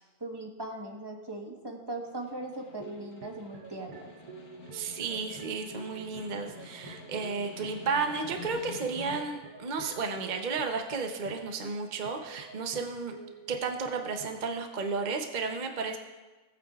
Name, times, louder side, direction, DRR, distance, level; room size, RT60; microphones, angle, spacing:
voice 1, 0.2-4.1, right 2 dB, 20° right, 2 dB, 1.0 m, -39 dB
Snare drum, 2.1-9.5, left 5 dB, 90° left, 1.8 m, -48 dB
sound 1, 2.8-14.5, right 5 dB, 85° right, 1.4 m, -49 dB
voice 2, 4.7-13.1 13.5-16.0, right 4 dB, 40° right, 4 dB, 0.7 m, -33 dB
18.5 x 8.9 x 2.4 m, 1.2 s
omnidirectional pair, 1.5 m